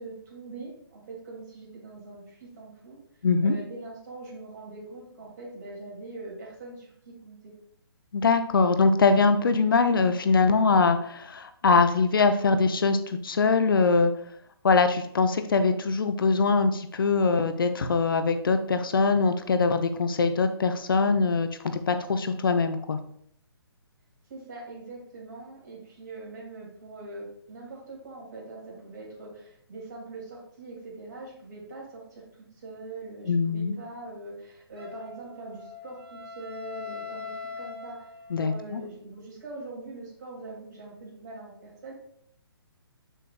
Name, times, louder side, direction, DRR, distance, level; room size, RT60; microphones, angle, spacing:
voice 1, 0.0-3.0 3.4-7.5 24.3-32.2 32.5-37.3 37.6-38.1 38.4-41.9, right 2 dB, 45° right, -3 dB, 2.6 m, -42 dB
voice 2, 3.2-3.6 8.1-14.1 14.6-21.5 21.9-23.0 33.3-33.8 38.3-38.8, left 4 dB, 60° left, 9 dB, 0.6 m, -22 dB
Wind instrument woodwind instrument, 34.7-38.7, left 5 dB, 70° right, 1.7 m, -41 dB
6.5 x 6.3 x 2.3 m, 0.68 s
figure-of-eight pair, 135°, 13 cm